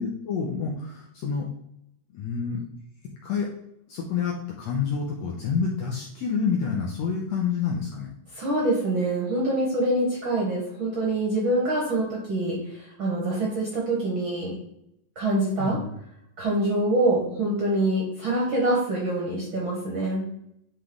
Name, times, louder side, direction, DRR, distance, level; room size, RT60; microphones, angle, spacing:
voice 1, 0.0-1.5 2.1-2.6 3.2-3.5 3.9-8.1 15.6-15.9, left 6 dB, 70° left, -2 dB, 1.7 m, -28 dB
voice 2, 8.3-14.5 15.1-15.8 16.4-20.2, right 1 dB, 55° right, -3 dB, 1.4 m, -25 dB
9.8 x 3.3 x 3.7 m, 0.76 s
omnidirectional pair, 3.9 m